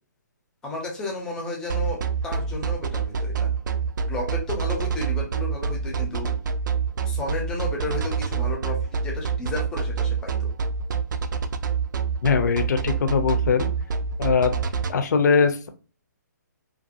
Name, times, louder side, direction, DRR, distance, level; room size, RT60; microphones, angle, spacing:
voice 1, 0.6-3.5 4.1-6.4 7.1-10.5, left 2 dB, 5° left, 0 dB, 0.4 m, -33 dB
sound 1, 1.7-14.9, right 6 dB, 75° right, 0.4 m, -26 dB
voice 2, 12.2-13.7 14.2-14.5 14.9-15.7, left 5 dB, 65° left, 7 dB, 0.4 m, -21 dB
2.5 x 2.3 x 2.6 m, 0.36 s
hypercardioid pair, 160°, 10 cm